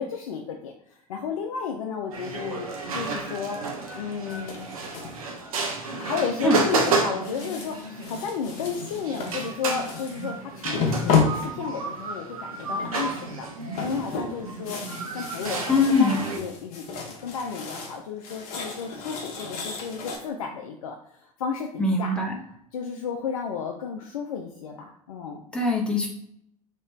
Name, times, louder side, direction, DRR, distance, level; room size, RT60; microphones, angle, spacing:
voice 1, 0.0-2.7 2.9-3.6 3.9-4.7 6.0-13.5 13.8-14.8 15.1-22.2 22.5-25.4, left 6 dB, 70° left, 2 dB, 0.4 m, -33 dB
sound 1, 2.1-16.4, right 4 dB, 75° right, 0.7 m, -31 dB
sound 2, 4.3-5.2 5.6-6.1 6.7-10.3 10.6-12.1 12.6-13.1 13.4-18.0 18.2-20.2, left 5 dB, 55° left, 0.9 m, -31 dB
voice 2, 15.7-16.2 21.8-22.3 25.5-26.1, left 3 dB, 5° left, -1 dB, 0.9 m, -22 dB
3.1 x 2.9 x 3.4 m, 0.71 s
figure-of-eight pair, 75°, 18 cm